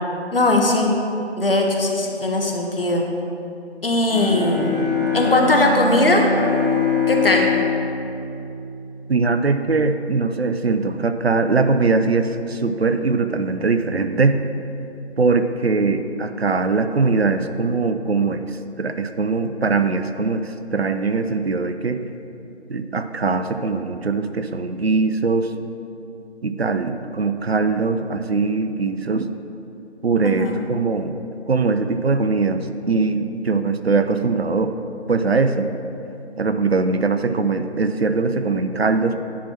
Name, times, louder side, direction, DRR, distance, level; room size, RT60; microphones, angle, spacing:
voice 1, 0.3-0.9 1.4-3.0 3.8-6.3 7.1-7.5 30.2-30.6, left 2 dB, 55° left, 2 dB, 1.2 m, -19 dB
Bowed string instrument, 4.1-9.4, left 4 dB, 40° right, 1.4 m, -23 dB
voice 2, 9.1-14.4 15.2-18.4 18.8-22.0 22.7-25.5 26.4-29.3 30.0-31.1 31.5-34.7 35.1-35.7 36.4-39.2, right 4 dB, 65° right, 9 dB, 0.6 m, -21 dB
10.0 x 4.3 x 5.9 m, 2.7 s
figure-of-eight pair, 160°, 34 cm